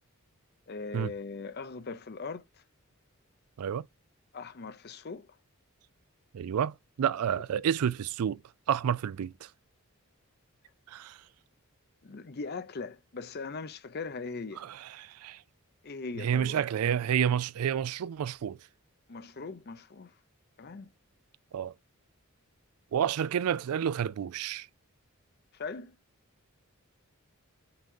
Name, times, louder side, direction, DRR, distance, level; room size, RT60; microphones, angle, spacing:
voice 1, 0.7-2.4 4.3-5.4 12.0-14.6 15.8-16.6 19.1-20.1 20.6-20.9 25.5-25.9, left 4 dB, 45° left, 0.6 m, -40 dB
voice 2, 6.3-8.4 8.7-9.5 10.9-11.2 14.6-15.4 16.1-18.6 21.5-21.7 22.9-24.7, right 8 dB, 85° right, 0.4 m, -30 dB
5.8 x 3.7 x 5.3 m
head